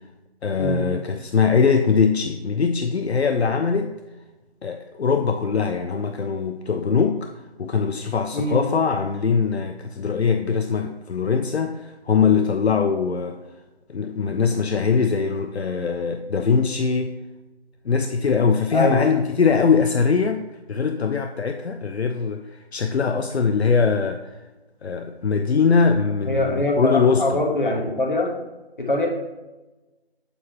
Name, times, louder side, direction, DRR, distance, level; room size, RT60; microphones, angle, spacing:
voice 1, 0.4-3.9 4.6-7.3 7.6-13.4 13.9-17.1 17.9-24.4 24.8-27.4, left 5 dB, 75° left, 6 dB, 0.5 m, -22 dB
voice 2, 26.3-28.3 28.8-29.1, left 1 dB, 50° left, 1 dB, 1.2 m, -23 dB
6.9 x 4.7 x 2.9 m, 1.1 s
figure-of-eight pair, 165°, 33 cm